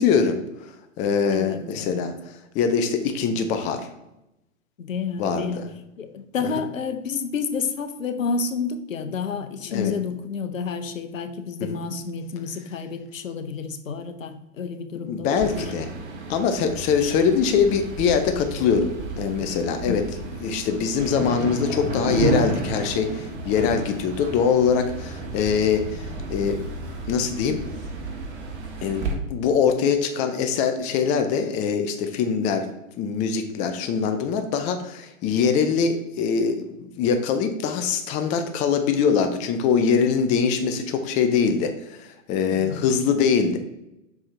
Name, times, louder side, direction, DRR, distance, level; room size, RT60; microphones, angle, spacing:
voice 1, 0.0-3.8 5.2-5.7 6.4-6.6 9.7-10.0 11.6-11.8 14.9-15.9 16.3-18.9 19.2-26.6 27.1-27.6 28.8-32.7 33.0-43.6, left 6 dB, 20° left, 7 dB, 0.5 m, -23 dB
voice 2, 1.3-2.0 4.8-5.6 6.0-15.6 19.9-20.0 42.5-42.9, left 5 dB, 80° left, 9 dB, 0.9 m, -30 dB
sound 1, 15.4-29.1, right 2 dB, 60° right, 1.6 m, -32 dB
5.9 x 4.8 x 3.7 m, 0.88 s
figure-of-eight pair, 110°, 39 cm